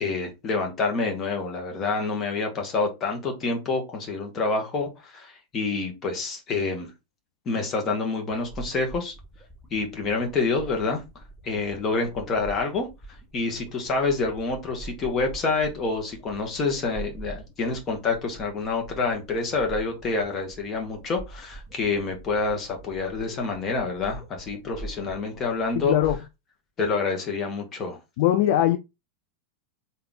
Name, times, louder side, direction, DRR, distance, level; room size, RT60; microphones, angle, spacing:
voice 1, 0.0-6.9 7.4-9.1 9.7-11.0 11.4-12.9 13.3-25.9 26.8-28.0, left 3 dB, 25° left, 1.3 m, -27 dB
sound 1, 8.3-26.2, right 2 dB, 10° left, 1.1 m, -44 dB
voice 2, 25.8-26.2 28.2-28.8, left 12 dB, 50° left, 0.3 m, -21 dB
3.6 x 2.8 x 3.6 m
figure-of-eight pair, 90°, 0 cm